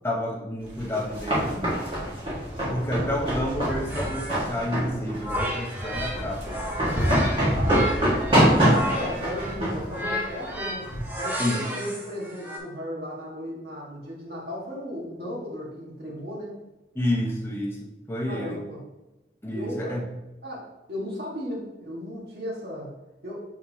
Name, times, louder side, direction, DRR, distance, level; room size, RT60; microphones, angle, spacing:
voice 1, 0.0-1.7 2.7-7.1 7.6-7.8 11.4-11.6 16.9-18.6 19.4-20.1, left 1 dB, 15° left, -2 dB, 1.0 m, -30 dB
sound 1, 0.7-11.1, equal, 30° right, 1.8 m, -25 dB
voice 2, 2.5-2.9 6.8-7.2 7.5-7.9 8.4-10.9 11.1-16.6 18.3-18.8 19.5-19.9 20.4-22.9 23.2-23.4, equal, 65° right, -4 dB, 1.7 m, -36 dB
sound 2, 3.7-6.2 6.4-12.6, equal, 10° right, 0.8 m, -33 dB
6.5 x 5.1 x 2.9 m, 1.0 s
head